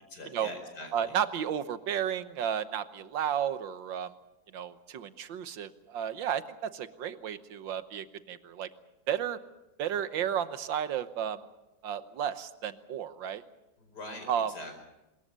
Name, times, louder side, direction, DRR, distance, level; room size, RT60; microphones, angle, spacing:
voice 1, 0.1-1.2 13.8-14.9, left 1 dB, 60° left, 5 dB, 5.5 m, -43 dB
voice 2, 0.9-4.1 4.5-8.7 9.1-9.4 9.8-11.4 11.8-13.4 14.3-14.5, right 9 dB, 80° right, 12 dB, 1.8 m, -33 dB
24.0 x 21.0 x 6.8 m, 0.98 s
omnidirectional pair, 2.0 m